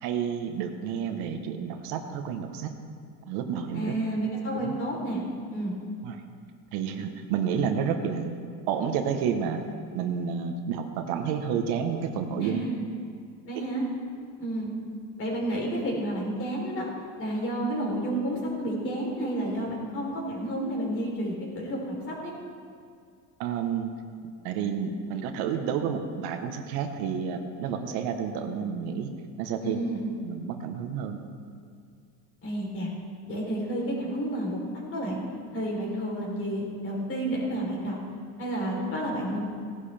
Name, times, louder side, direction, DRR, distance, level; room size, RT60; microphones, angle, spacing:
voice 1, 0.0-2.7 3.3-3.9 4.6-4.8 6.0-6.2 6.7-8.4 8.7-9.6 9.9-12.6 23.4-23.9 24.4-29.1 29.4-29.8 30.2-31.2, right 7 dB, 80° right, 6 dB, 1.2 m, -30 dB
voice 2, 3.7-5.2 5.5-5.8 12.4-12.8 13.5-13.9 14.4-14.8 15.2-16.9 17.2-22.3 29.6-30.1 32.4-32.9 33.3-34.6 34.9-35.2 35.5-38.0 38.4-39.4, right 1 dB, 35° left, -3 dB, 3.7 m, -30 dB
17.0 x 11.0 x 3.4 m, 2.3 s
cardioid pair, 140°, 39 cm